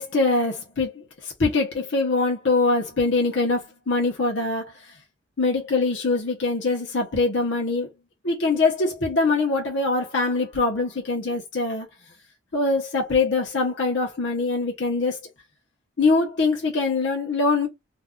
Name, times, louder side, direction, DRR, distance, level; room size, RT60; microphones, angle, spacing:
voice 1, 0.0-4.9 5.4-7.9 8.2-11.9 12.5-15.2 16.0-17.7, left 3 dB, 75° left, 0.9 m, -23 dB
2.6 x 2.3 x 3.6 m
head